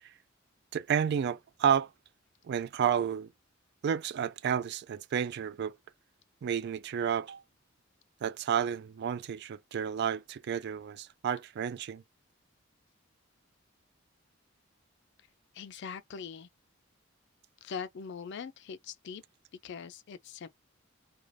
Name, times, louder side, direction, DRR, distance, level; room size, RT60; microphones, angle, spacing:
voice 1, 0.7-1.9 2.4-3.3 3.8-5.7 6.4-7.4 8.2-12.0, right 8 dB, 55° right, 0.3 m, -31 dB
voice 2, 15.5-16.5 17.6-19.2 19.6-20.5, left 6 dB, 55° left, 0.4 m, -42 dB
2.5 x 2.3 x 3.2 m
head